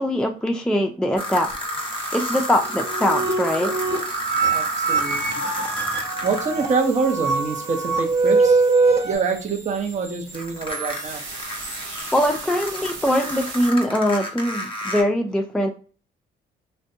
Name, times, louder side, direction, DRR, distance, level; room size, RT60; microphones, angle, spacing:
voice 1, 0.0-1.5 2.1-3.7 12.1-15.7, equal, 5° left, 4 dB, 0.4 m, -22 dB
sound 1, 1.2-6.6 10.3-15.0, equal, 25° left, 0.9 m, -31 dB
sound 2, 1.5-13.7, right 4 dB, 90° right, 0.9 m, -39 dB
sound 3, 2.6-9.1, right 4 dB, 55° right, 0.8 m, -22 dB
voice 2, 4.5-5.2 6.2-8.6 9.0-11.2, right 5 dB, 35° right, 3 dB, 0.7 m, -25 dB
2.5 x 2.1 x 2.6 m, 0.39 s
supercardioid pair, 55°, 21 cm